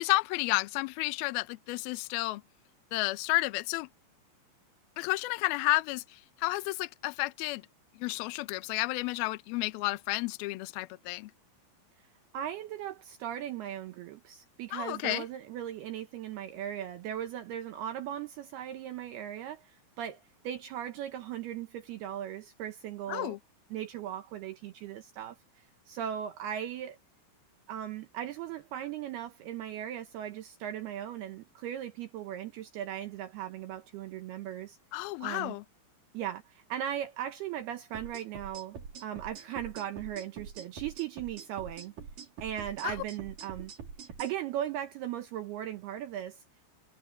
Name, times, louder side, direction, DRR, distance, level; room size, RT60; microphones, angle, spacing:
voice 1, 0.0-2.4 2.9-3.9 5.0-6.0 6.4-7.6 8.0-11.3 14.7-15.2 23.1-23.4 34.9-35.6 42.8-42.9, left 21 dB, 85° left, 2.1 m, -31 dB
voice 2, 12.3-23.4 23.7-27.0 27.7-34.8 35.2-35.5 36.1-41.9 42.4-43.7 44.2-46.4, right 11 dB, 75° right, 2.4 m, -38 dB
sound 1, 37.9-44.3, right 6 dB, 45° right, 4.5 m, -45 dB
omnidirectional pair, 5.7 m